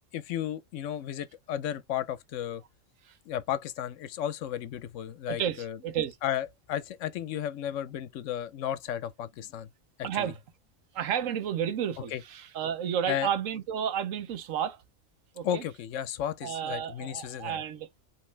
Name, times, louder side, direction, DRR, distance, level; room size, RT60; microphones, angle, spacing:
voice 1, 0.1-2.6 3.3-5.8 6.2-9.7 10.0-10.3 12.1-12.2 13.1-13.3 15.4-17.6, left 10 dB, 75° left, 0.9 m, -34 dB
voice 2, 5.3-6.2 10.0-10.4 10.9-14.8 15.4-15.6 16.4-17.9, right 9 dB, 80° right, 1.2 m, -32 dB
5.2 x 3.0 x 3.2 m
omnidirectional pair, 1.3 m